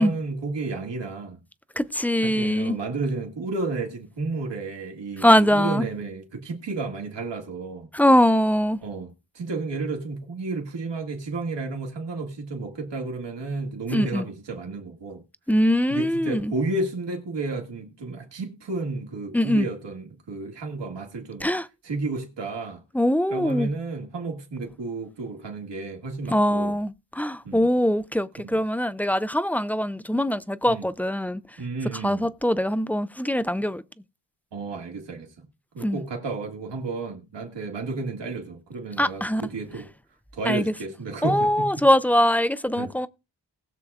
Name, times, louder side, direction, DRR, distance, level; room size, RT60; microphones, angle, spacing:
voice 1, 0.0-1.4 2.2-7.9 8.8-15.2 15.9-21.5 21.8-22.8 23.3-26.8 27.4-27.7 30.6-30.8 31.6-32.3 34.5-35.5 35.7-39.9 40.3-41.8 42.8-42.9, right 3 dB, 75° right, 2.0 m, -32 dB
voice 2, 1.8-2.8 5.2-5.9 7.9-8.8 13.9-14.3 15.5-16.5 19.3-19.7 21.4-21.7 22.9-23.7 26.3-31.4 32.0-33.8 35.8-36.0 39.0-39.4 40.5-40.7 41.2-43.1, equal, 5° left, 0.4 m, -22 dB
20.0 x 6.7 x 2.4 m
cardioid pair, 75°, 43 cm